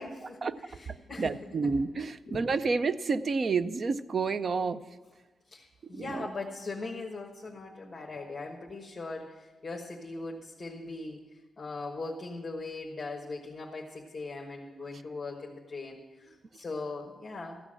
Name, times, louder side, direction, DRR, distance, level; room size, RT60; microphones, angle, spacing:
voice 1, 0.0-1.3 1.6-1.8 2.3-2.5 5.5-11.2 11.6-17.6, left 3 dB, 25° left, -1 dB, 1.2 m, -40 dB
voice 2, 1.2-4.8 5.9-6.3, right 4 dB, 40° right, 14 dB, 0.4 m, -29 dB
14.0 x 6.1 x 8.7 m, 1.2 s
wide cardioid pair, 160°, 0 cm